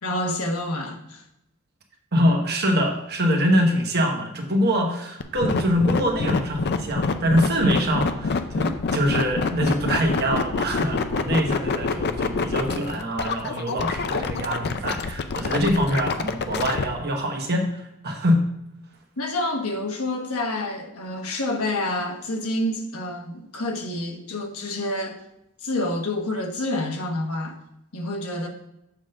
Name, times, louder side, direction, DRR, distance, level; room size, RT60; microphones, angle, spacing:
voice 1, 0.0-1.2 19.2-25.2 25.6-27.6 27.9-28.5, left 1 dB, 85° left, 3 dB, 1.2 m, -28 dB
voice 2, 2.1-18.4, equal, 50° right, 2 dB, 1.3 m, -24 dB
sound 1, 5.2-16.8, left 4 dB, 50° left, 0.5 m, -26 dB
7.2 x 3.7 x 6.5 m, 0.82 s
head